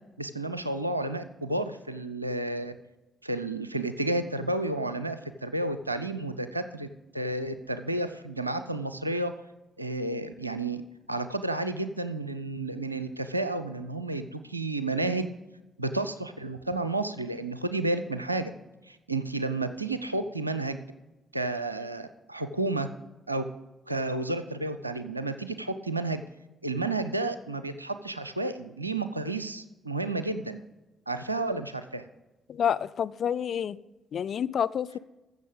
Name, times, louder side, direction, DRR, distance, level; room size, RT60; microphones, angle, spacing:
voice 1, 0.2-2.8 3.2-6.9 7.1-9.3 9.8-10.8 11.1-15.3 15.8-18.5 18.9-20.9 21.3-22.9 23.3-23.5 23.9-26.2 26.6-30.6 31.1-32.0, right 2 dB, 90° right, 0.4 m, -31 dB
voice 2, 32.5-33.8 34.1-35.0, left 8 dB, 50° left, 0.3 m, -28 dB
14.5 x 6.8 x 5.1 m
figure-of-eight pair, 40°, 0 cm